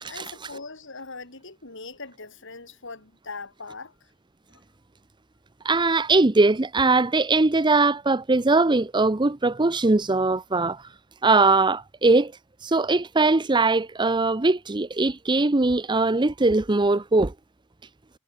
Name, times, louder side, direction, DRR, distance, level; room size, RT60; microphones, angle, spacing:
voice 1, 0.1-4.1 4.5-4.6, left 3 dB, 60° left, 5.3 m, -40 dB
voice 2, 5.6-10.8 11.2-12.3 12.6-17.3, right 3 dB, 20° right, 0.7 m, -21 dB
head